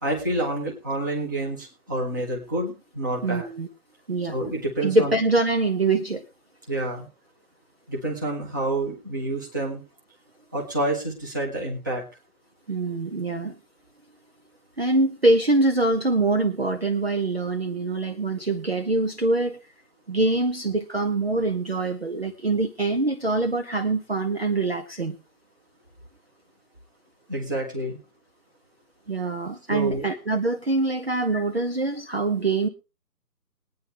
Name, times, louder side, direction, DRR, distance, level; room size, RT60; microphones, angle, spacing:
voice 1, 0.0-3.5 4.3-5.2 6.7-7.1 7.9-9.8 10.5-12.0 27.3-28.0 29.7-30.0, right 2 dB, 10° right, -2 dB, 1.2 m, -28 dB
voice 2, 3.2-3.7 4.1-4.4 4.8-6.2 12.7-13.6 14.8-19.6 20.1-25.2 29.1-32.7, right 2 dB, 40° right, 6 dB, 0.7 m, -24 dB
21.0 x 9.4 x 3.3 m, 0.28 s
figure-of-eight pair, 160°, 49 cm